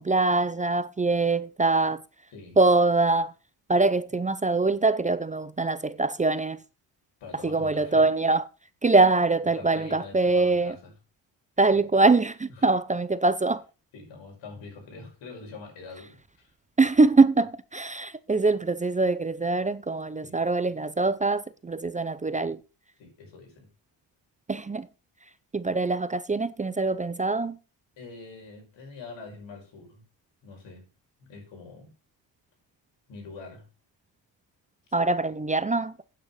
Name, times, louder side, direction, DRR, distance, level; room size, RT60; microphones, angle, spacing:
voice 1, 0.0-2.0 2.6-3.3 3.7-6.6 7.4-8.4 8.8-10.8 11.6-13.6 16.8-22.6 24.5-24.9 25.5-27.6 34.9-35.9, right 3 dB, 20° right, 0.6 m, -23 dB
voice 2, 7.2-8.1 9.5-10.9 12.6-12.7 13.9-16.5 20.2-20.4 23.0-23.7 28.0-30.1 30.4-30.9 31.2-31.9 33.1-33.7, left 4 dB, 85° left, 5.7 m, -44 dB
9.1 x 7.8 x 5.5 m
cardioid pair, 110°, 43 cm